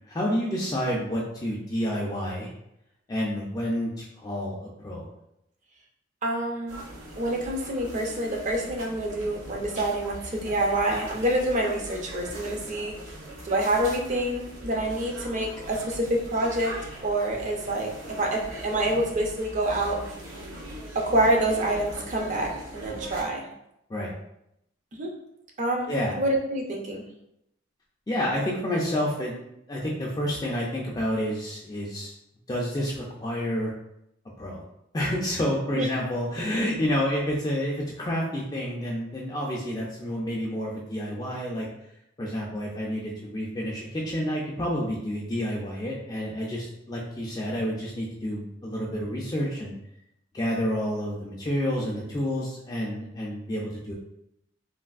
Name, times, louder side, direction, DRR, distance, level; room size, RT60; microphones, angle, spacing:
voice 1, 0.1-2.5 3.1-5.1 23.9-24.1 25.9-26.2 28.1-29.3 29.7-32.1 32.5-33.7 34.4-34.6 34.9-41.7 42.2-49.7 50.3-53.9, equal, 20° left, -3 dB, 0.3 m, -29 dB
voice 2, 6.2-6.8 7.2-13.0 13.4-16.7 17.0-20.0 20.9-23.4 24.9-25.1 25.6-27.0 35.7-35.9, right 1 dB, 35° right, 0 dB, 0.5 m, -27 dB
sound 1, 6.7-23.2, right 1 dB, 80° right, 0.8 m, -41 dB
3.3 x 2.4 x 2.3 m, 0.80 s
head